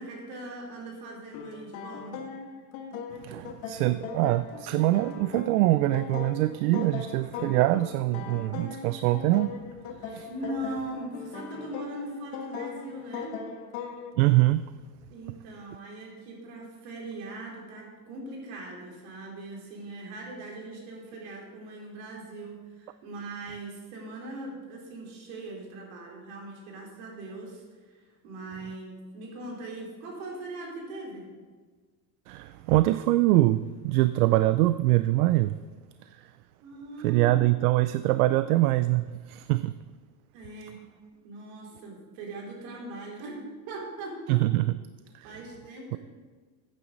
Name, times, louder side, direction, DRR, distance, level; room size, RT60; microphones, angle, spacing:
voice 1, 0.0-2.2 10.3-13.4 15.1-31.3 36.6-38.1 40.3-40.8 41.2-44.4 45.2-46.0, right 2 dB, 70° right, -2 dB, 4.1 m, -40 dB
sound 1, 1.3-14.1, left 6 dB, 65° left, 1.6 m, -40 dB
voice 2, 3.2-9.6 10.0-10.3 14.2-14.6 32.3-35.5 36.0-36.3 37.0-39.8 44.3-44.8 45.1-45.3, right 17 dB, 85° right, 13 dB, 0.5 m, -24 dB
14.0 x 9.1 x 4.0 m, 1.5 s
supercardioid pair, 140°, 43 cm